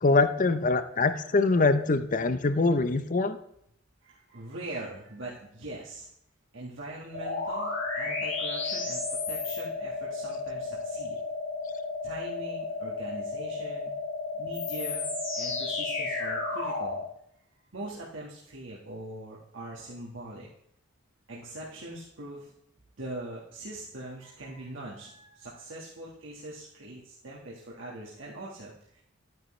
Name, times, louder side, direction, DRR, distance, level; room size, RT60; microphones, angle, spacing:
voice 1, 0.0-3.4, left 3 dB, 40° left, 11 dB, 0.6 m, -24 dB
voice 2, 4.0-6.1 6.5-11.2 12.0-13.9 14.3-17.0 17.7-20.5 21.3-22.5 23.0-29.0, right 1 dB, 65° right, -5 dB, 1.5 m, -42 dB
sound 1, 7.1-17.0, left 3 dB, 65° left, 3.0 m, -33 dB
10.0 x 9.2 x 3.1 m, 0.73 s
head